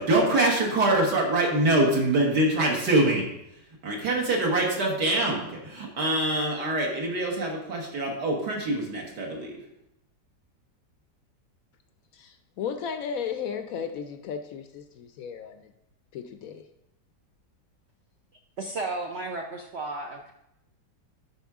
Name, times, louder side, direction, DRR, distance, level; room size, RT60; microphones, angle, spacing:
voice 1, 0.0-3.3 3.8-9.5, right 2 dB, 65° right, -1 dB, 2.1 m, -24 dB
voice 2, 12.1-15.7 16.1-16.7, left 7 dB, 75° left, 8 dB, 0.8 m, -35 dB
voice 3, 18.6-20.3, right 3 dB, 85° right, 2 dB, 0.5 m, -33 dB
10.5 x 4.5 x 3.6 m, 0.82 s
omnidirectional pair, 1.9 m